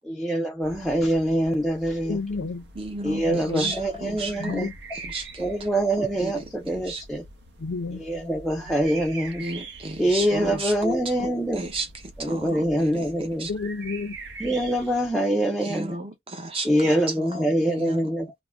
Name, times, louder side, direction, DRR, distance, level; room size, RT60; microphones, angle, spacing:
voice 1, 0.0-2.2 3.0-4.7 5.4-7.2 8.0-9.4 10.0-11.6 12.2-13.5 14.4-16.0 16.6-18.3, equal, ahead, 0.4 m, -24 dB
sound 1, 0.6-15.1, right 3 dB, 65° right, 0.7 m, -44 dB
voice 2, 2.0-2.7 3.3-3.8 4.3-4.7 7.6-8.0 8.7-8.8 13.5-14.1, left 4 dB, 75° left, 0.5 m, -31 dB
voice 3, 2.8-4.6 5.1-5.5 6.0-6.4 6.7-7.0 9.4-10.7 11.2-11.3 11.6-11.9 12.2-13.1 13.4-13.5 15.6-16.7 17.2-18.0, right 2 dB, 30° right, 0.7 m, -33 dB
2.5 x 2.1 x 3.2 m
head